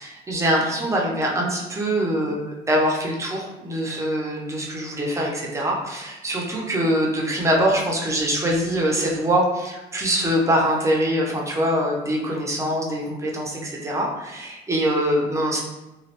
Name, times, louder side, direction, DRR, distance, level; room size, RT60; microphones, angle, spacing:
voice 1, 0.0-15.6, equal, 15° right, -2 dB, 0.7 m, -23 dB
3.1 x 2.5 x 2.8 m, 1.0 s
cardioid pair, 110°, 17 cm